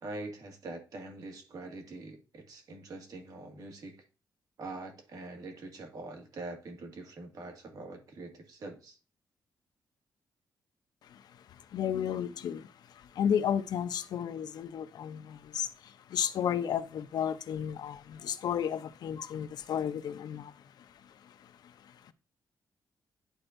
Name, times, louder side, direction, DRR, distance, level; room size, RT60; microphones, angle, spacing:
voice 1, 0.0-4.0 4.6-9.0, right 2 dB, 60° right, 2.0 m, -44 dB
voice 2, 11.0-22.1, left 9 dB, 70° left, 0.6 m, -34 dB
11.5 x 4.4 x 2.6 m
cardioid pair, 145°, 7 cm